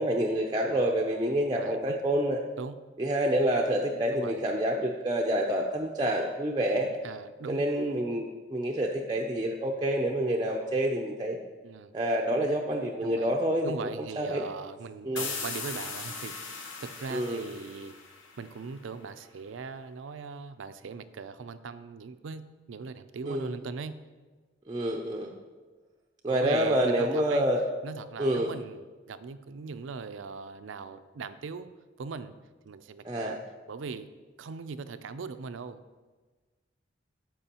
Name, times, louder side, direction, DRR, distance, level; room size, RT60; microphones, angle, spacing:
voice 1, 0.0-2.4 3.0-6.9 7.5-11.4 11.9-13.7 14.0-14.4 15.0-15.3 17.1-17.5 23.3-23.5 24.7-25.3 26.2-27.6 28.2-28.5 33.0-33.4, right 1 dB, 20° right, 0 dB, 0.4 m, -28 dB
voice 2, 1.5-2.0 2.6-2.8 4.1-4.4 6.7-7.6 11.6-11.9 12.3-12.4 13.0-13.3 13.6-17.9 18.4-24.0 26.3-27.5 27.8-31.7 32.0-32.3 32.6-33.4 33.7-34.1 34.4-35.8, right 5 dB, 80° right, 12 dB, 0.4 m, -40 dB
sound 1, 15.2-18.8, left 5 dB, 85° left, 1.1 m, -39 dB
13.0 x 4.8 x 2.9 m, 1.3 s
head